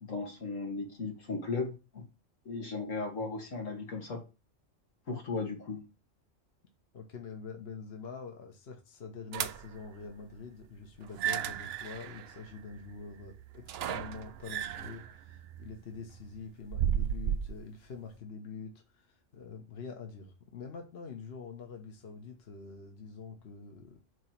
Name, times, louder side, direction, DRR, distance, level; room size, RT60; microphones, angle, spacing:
voice 1, 0.0-2.0 2.5-4.2 5.1-5.8, left 3 dB, 85° left, 2.2 m, -36 dB
voice 2, 6.9-24.0, left 5 dB, 55° left, 1.3 m, -45 dB
sound 1, 9.3-9.9 11.0-17.6, right 9 dB, 65° right, 0.7 m, -35 dB
7.9 x 3.0 x 5.8 m
omnidirectional pair, 1.3 m